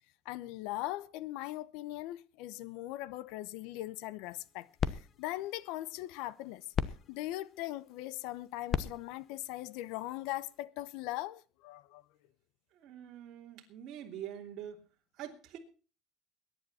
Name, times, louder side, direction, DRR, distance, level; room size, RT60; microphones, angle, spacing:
voice 1, 0.2-6.7 7.1-12.0, left 16 dB, 80° left, 0.9 m, -40 dB
sound 1, 4.2-10.6, left 8 dB, 40° left, 1.0 m, -40 dB
voice 2, 12.7-14.8 15.1-15.6, right 10 dB, 55° right, 3.1 m, -45 dB
22.0 x 10.5 x 4.3 m
cardioid pair, 145°, 0 cm